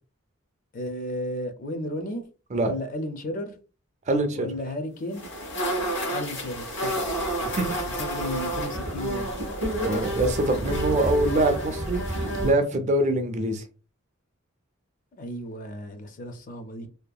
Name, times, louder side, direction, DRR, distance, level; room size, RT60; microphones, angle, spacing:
voice 1, 0.7-2.3 2.6-3.5 4.4-5.3 6.1-7.0 8.0-9.3 15.2-16.9, left 1 dB, 40° left, 0.4 m, -34 dB
voice 2, 4.1-4.5 7.6-7.7 9.8-13.6, right 2 dB, 35° right, 0.3 m, -24 dB
sound 1, 5.1-12.5, right 1 dB, 60° left, 1.2 m, -29 dB
2.7 x 2.3 x 2.2 m
head